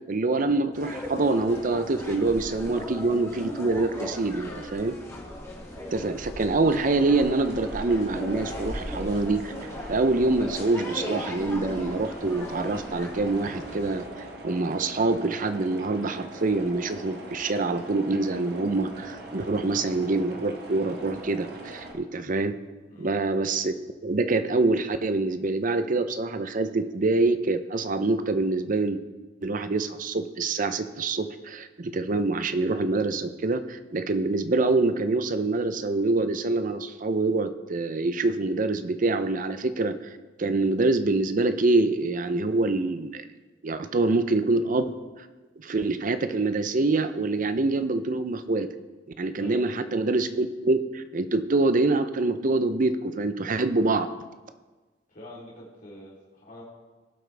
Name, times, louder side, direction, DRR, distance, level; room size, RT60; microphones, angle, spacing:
voice 1, 0.1-4.9 5.9-9.5 9.9-14.0 14.4-22.6 23.0-23.7 24.0-29.0 29.4-39.9 40.4-43.2 43.6-45.0 45.6-48.7 49.2-54.1, right 3 dB, 45° right, 10 dB, 0.6 m, -25 dB
sound 1, 0.7-14.0, left 1 dB, 15° left, 2.4 m, -38 dB
voice 2, 4.4-4.7 22.9-23.1 49.4-49.8 55.1-56.6, left 1 dB, 50° left, -5 dB, 3.5 m, -45 dB
sound 2, 6.7-21.9, right 1 dB, 60° right, 1.5 m, -42 dB
18.5 x 7.9 x 3.4 m, 1.3 s
head